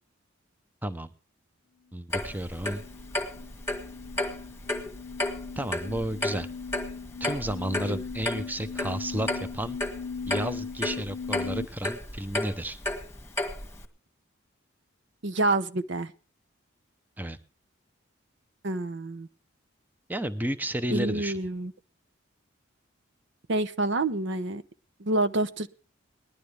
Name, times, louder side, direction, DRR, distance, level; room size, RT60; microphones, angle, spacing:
voice 1, 0.8-1.1 1.9-2.8 5.6-6.5 7.2-9.8 10.3-12.8 17.2-17.4 20.1-21.4, right 1 dB, 10° right, 10 dB, 0.7 m, -32 dB
Clock, 2.1-13.8, left 1 dB, 15° left, 1.7 m, -33 dB
sound 1, 2.2-11.6, left 5 dB, 75° left, 0.7 m, -39 dB
voice 2, 15.2-16.1 18.6-19.3 20.9-21.7 23.5-24.6 25.0-25.7, right 2 dB, 60° right, 10 dB, 0.8 m, -27 dB
19.5 x 12.0 x 3.3 m, 0.36 s
head